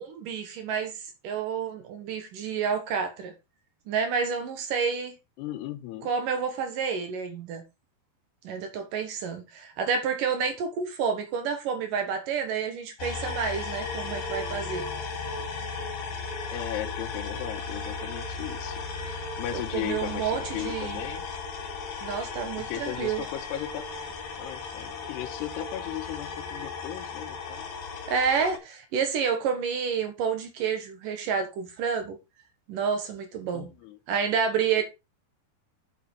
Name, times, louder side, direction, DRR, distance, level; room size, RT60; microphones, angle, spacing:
voice 1, 0.0-3.3 3.9-5.1 6.0-7.6 8.4-14.9 19.5-21.0 22.0-23.2 28.1-32.2 32.7-33.7 34.1-34.8, right 6 dB, 60° right, 2.6 m, -29 dB
voice 2, 5.4-6.1 16.5-21.3 22.6-23.9 24.4-27.7 33.5-34.0, left 12 dB, 85° left, 2.9 m, -37 dB
sound 1, 13.0-28.6, left 4 dB, 65° left, 4.5 m, -36 dB
7.8 x 7.8 x 4.6 m
omnidirectional pair, 4.8 m